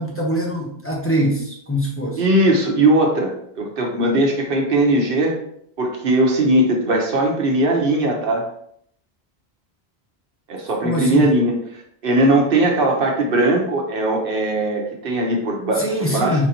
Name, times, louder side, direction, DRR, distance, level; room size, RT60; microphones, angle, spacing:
voice 1, 0.0-2.2 10.8-11.3 15.8-16.5, equal, 15° left, -2 dB, 0.8 m, -23 dB
voice 2, 2.2-5.4 5.8-8.5 10.5-16.5, right 1 dB, 60° right, 0 dB, 1.2 m, -19 dB
4.3 x 4.1 x 2.9 m, 0.68 s
omnidirectional pair, 1.1 m